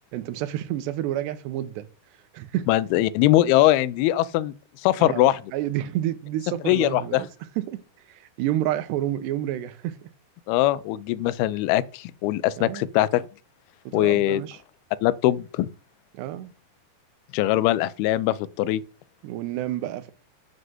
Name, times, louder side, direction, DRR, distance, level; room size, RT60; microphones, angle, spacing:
voice 1, 0.1-1.9 2.3-2.7 5.0-7.3 7.6-7.8 8.2-10.1 12.6-12.9 13.9-14.6 16.1-16.5 19.2-20.1, right 13 dB, 85° right, 3.1 m, -29 dB
voice 2, 2.7-4.5 4.8-5.4 6.7-7.2 10.5-13.2 13.9-14.4 15.0-15.7 17.3-18.8, left 15 dB, 80° left, 2.4 m, -21 dB
7.7 x 6.3 x 7.8 m
omnidirectional pair, 4.8 m